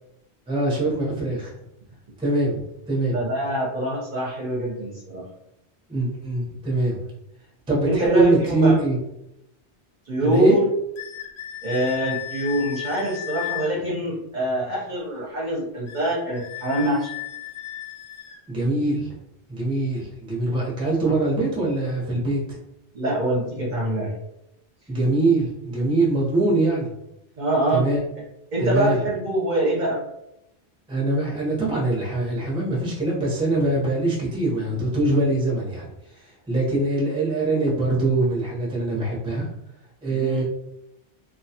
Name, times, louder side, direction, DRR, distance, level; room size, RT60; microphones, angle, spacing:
voice 1, 0.5-1.5 2.2-3.1 5.9-7.0 7.7-9.0 10.2-10.6 18.5-19.2 19.5-22.6 24.9-26.9 27.7-28.0 28.6-29.0 30.9-39.5 40.0-40.4, right 2 dB, 5° right, -4 dB, 0.5 m, -23 dB
voice 2, 3.1-5.2 7.8-8.8 10.1-10.7 11.6-17.1 22.9-24.1 27.4-27.9 28.5-30.0 40.1-40.4, right 1 dB, 50° right, -5 dB, 0.7 m, -24 dB
sound 1, 11.0-13.7 15.9-18.4, left 14 dB, 70° left, 0.8 m, -34 dB
2.3 x 2.2 x 2.7 m, 0.84 s
omnidirectional pair, 1.1 m